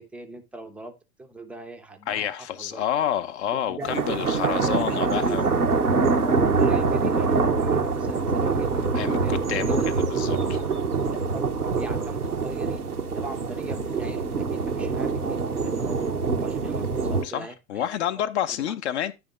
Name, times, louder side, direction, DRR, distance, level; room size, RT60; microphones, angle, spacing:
voice 1, 0.0-2.8 3.5-5.5 6.2-8.9 9.2-10.1 10.6-10.7 11.1-12.8 13.1-17.8 18.1-18.2 18.5-18.7, right 3 dB, 5° right, 0.5 m, -39 dB
voice 2, 2.1-5.4 8.9-9.8 10.1-10.4 17.2-19.1, left 10 dB, 50° left, 0.7 m, -28 dB
sound 1, 3.8-17.2, right 4 dB, 85° right, 0.9 m, -25 dB
9.6 x 3.5 x 4.7 m
figure-of-eight pair, 90°, 44 cm